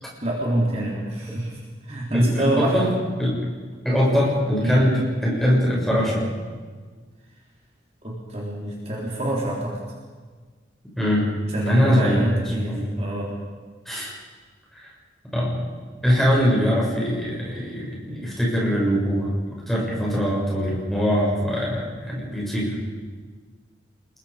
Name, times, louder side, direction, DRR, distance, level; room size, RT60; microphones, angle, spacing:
voice 1, 0.2-1.6 1.8-2.8 4.6-4.9 8.0-9.8 11.5-13.3, right 1 dB, 35° right, -4 dB, 3.9 m, -26 dB
voice 2, 2.1-2.9 3.2-3.3 3.8-6.2 11.0-11.3 11.6-12.3 12.6-12.9 13.9-14.1 14.7-14.9 15.3-15.5 16.0-19.3 19.7-22.7, equal, ahead, -5 dB, 6.9 m, -22 dB
28.5 x 21.5 x 5.2 m, 1.5 s
head